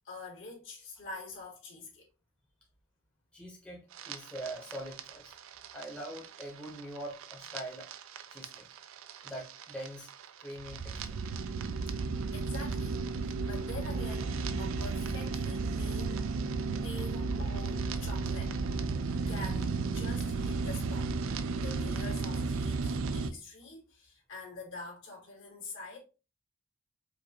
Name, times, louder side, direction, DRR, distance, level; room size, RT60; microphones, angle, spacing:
voice 1, 0.0-2.1 12.3-16.2 16.8-18.6 19.3-21.1 21.5-26.0, left 3 dB, 60° left, 1.9 m, -46 dB
voice 2, 3.3-5.3 5.7-7.9 8.3-8.7 9.2-10.1 10.4-11.2, right 1 dB, 5° left, 0.9 m, -43 dB
sound 1, 3.9-23.3, right 4 dB, 70° right, 0.4 m, -34 dB
5.2 x 2.5 x 2.8 m
head